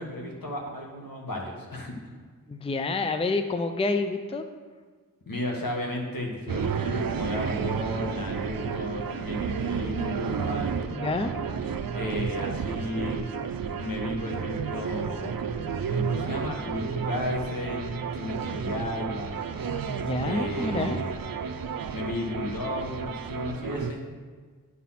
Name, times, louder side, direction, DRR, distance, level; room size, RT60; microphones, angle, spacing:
voice 1, 0.0-1.9 5.3-10.7 11.9-13.2 13.8-15.5 15.9-19.5 20.2-21.2 21.9-24.0, left 1 dB, 75° left, 0 dB, 1.5 m, -34 dB
voice 2, 2.5-4.4 10.9-11.3 19.9-21.0, left 3 dB, 15° left, 8 dB, 0.4 m, -28 dB
sound 1, 6.5-23.9, right 6 dB, 80° right, 0.5 m, -31 dB
9.4 x 4.2 x 5.7 m, 1.5 s
wide cardioid pair, 70°, 34 cm